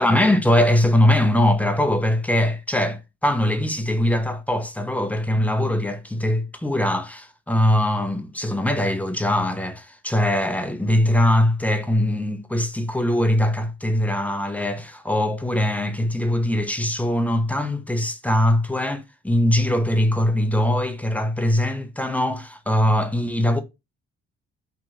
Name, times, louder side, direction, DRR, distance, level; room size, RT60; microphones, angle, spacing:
voice 1, 0.0-23.6, left 1 dB, 5° left, 0.3 m, -21 dB
2.9 x 2.5 x 2.4 m
cardioid pair, 90°, 30 cm